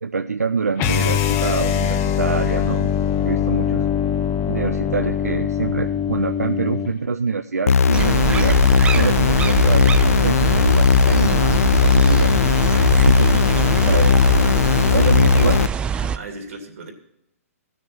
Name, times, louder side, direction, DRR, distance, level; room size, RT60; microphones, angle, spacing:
voice 1, 0.0-3.0 3.2-3.8 4.5-12.3 12.9-13.4 13.8-14.2 14.9-15.6, right 4 dB, 90° right, 7 dB, 0.6 m, -25 dB
sound 1, 0.8-6.9, left 8 dB, 30° left, 0.8 m, -22 dB
sound 2, 7.7-15.7, left 6 dB, 70° left, 0.4 m, -16 dB
sound 3, 7.9-16.2, right 7 dB, 10° right, 0.4 m, -24 dB
voice 2, 12.7-13.2 14.5-15.2 15.9-16.9, right 2 dB, 60° right, 3 dB, 2.8 m, -36 dB
15.5 x 6.6 x 6.0 m, 0.80 s
hypercardioid pair, 125°, 8 cm